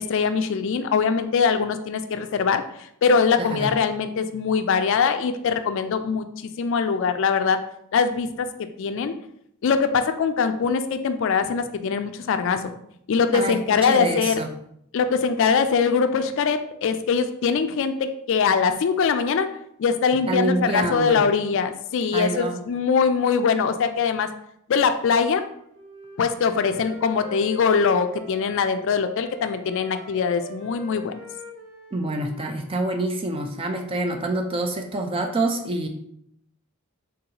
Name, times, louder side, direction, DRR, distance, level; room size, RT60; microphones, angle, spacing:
voice 1, 0.0-2.6 3.0-6.3 6.6-7.6 7.9-8.5 8.8-9.1 9.6-12.6 13.1-14.4 14.9-19.5 19.8-24.3 24.7-25.4 26.2-31.1, left 5 dB, 60° left, 9 dB, 0.3 m, -22 dB
voice 2, 3.4-3.7 13.3-14.5 20.3-21.2 22.1-22.6 31.9-35.9, right 2 dB, 25° right, 5 dB, 0.4 m, -26 dB
Wind instrument woodwind instrument, 25.2-28.8 29.2-32.9, left 1 dB, 40° right, 1.0 m, -43 dB
3.9 x 3.7 x 2.8 m, 0.73 s
head